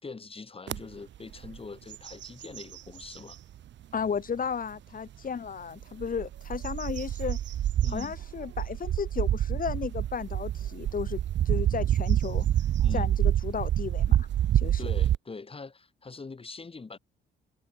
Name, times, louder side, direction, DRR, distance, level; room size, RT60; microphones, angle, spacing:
voice 1, 0.0-3.4 7.8-8.2 12.8-13.1 14.8-17.0, left 4 dB, 30° left, 4.8 m, -42 dB
sound 1, 0.7-0.8 1.3-1.6 1.9-3.4 4.0-4.1 5.8-15.2, right 11 dB, 65° right, 1.3 m, -27 dB
voice 2, 3.9-7.4 7.9-11.2 11.5-12.5 12.9-14.3 14.6-14.8, left 6 dB, 45° left, 5.2 m, -34 dB
cardioid pair, 90°, 20 cm